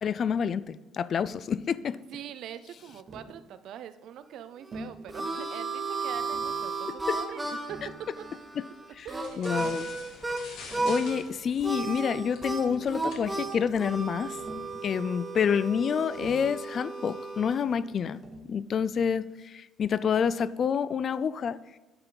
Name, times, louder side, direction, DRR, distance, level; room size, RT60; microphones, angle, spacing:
voice 1, 0.0-2.0 9.0-9.1 9.4-9.9 10.8-14.4 14.8-18.2 18.5-21.6, left 7 dB, 45° left, 16 dB, 0.4 m, -28 dB
voice 2, 2.1-7.8 8.2-8.3 9.0-9.6, right 10 dB, 70° right, 12 dB, 0.5 m, -43 dB
Tap, 3.1-3.4 4.7-5.0 6.1-6.6 7.7-8.5 9.5-9.8 10.5-11.0 12.2-12.3 12.5-13.1 14.4-14.8 16.1-16.6 18.2-18.6, right 1 dB, 35° right, 1.5 m, -45 dB
Harmonica, 4.6-10.4 10.7-11.2 11.6-17.6, right 3 dB, 10° right, 1.1 m, -34 dB
sound 1, 9.2-14.5, left 3 dB, 70° left, 2.1 m, -48 dB
11.0 x 5.7 x 3.9 m, 1.2 s
cardioid pair, 130°, 0 cm